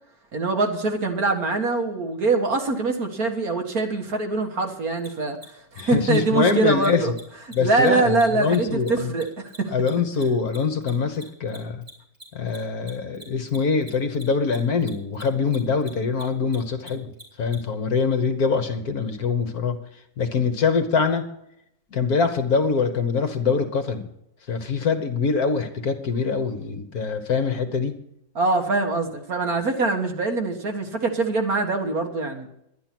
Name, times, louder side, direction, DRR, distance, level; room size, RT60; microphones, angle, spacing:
voice 1, 0.3-5.4 5.7-7.1 7.6-9.7 28.4-32.5, right 3 dB, 55° right, 4 dB, 2.0 m, -23 dB
Mechanisms, 5.0-5.1 5.4-5.5 5.7-5.8 6.1-6.2 6.4-6.5 6.8-6.9 7.1-7.2 7.5-10.2 10.5-17.6, right 1 dB, 25° right, 4.0 m, -44 dB
voice 2, 5.8-7.1 7.6-9.1 9.7-11.8 12.3-17.1 17.4-19.8 20.2-21.2 21.9-24.1 24.5-28.0, left 5 dB, 55° left, 8 dB, 1.6 m, -24 dB
12.0 x 10.5 x 6.0 m, 0.78 s
omnidirectional pair, 2.0 m